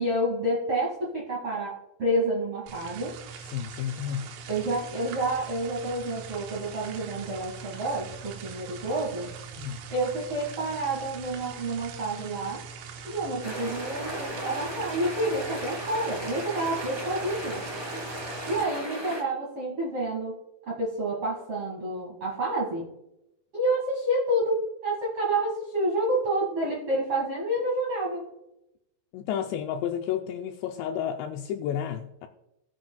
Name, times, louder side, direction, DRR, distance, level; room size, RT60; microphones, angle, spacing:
voice 1, 0.0-3.2 4.5-9.3 9.9-12.6 13.0-17.6 18.5-20.4 20.7-22.9 23.5-28.2, right 1 dB, 55° right, -5 dB, 1.6 m, -29 dB
sound 1, 2.7-18.6, right 6 dB, 85° right, 3.3 m, -42 dB
voice 2, 3.5-4.3 9.6-9.8 29.1-32.3, left 9 dB, 85° left, 5 dB, 2.6 m, -31 dB
sound 2, 13.4-19.2, equal, 10° right, 1.7 m, -36 dB
18.5 x 7.7 x 2.3 m, 0.87 s
omnidirectional pair, 5.5 m